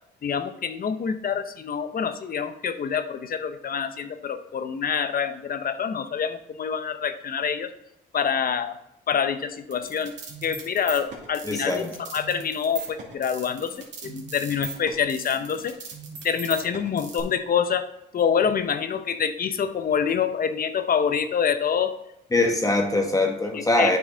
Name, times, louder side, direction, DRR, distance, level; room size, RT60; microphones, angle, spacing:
voice 1, 0.2-7.7 8.1-8.8 9.1-10.1 10.4-11.8 12.1-13.7 14.0-15.7 16.2-17.9 18.1-21.9 23.5-23.9, left 7 dB, 45° left, 10 dB, 0.8 m, -26 dB
sound 1, 9.7-17.2, right 5 dB, 65° right, 2.4 m, -39 dB
voice 2, 11.4-11.9 22.3-24.0, left 2 dB, 15° left, 2 dB, 1.3 m, -22 dB
8.7 x 5.9 x 3.9 m, 0.82 s
cardioid pair, 90°, 20 cm